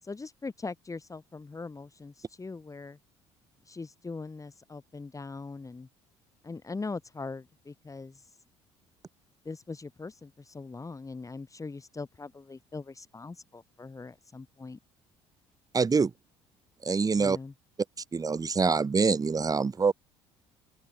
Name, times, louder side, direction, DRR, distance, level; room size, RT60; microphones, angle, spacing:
voice 1, 0.0-3.0 3.6-5.9 6.4-8.3 9.4-14.8 17.1-17.5, left 3 dB, 25° left, 6.3 m, -41 dB
voice 2, 15.7-16.1 16.8-17.4 18.1-19.9, right 5 dB, 25° right, 1.4 m, -25 dB
hypercardioid pair, 60°, 14 cm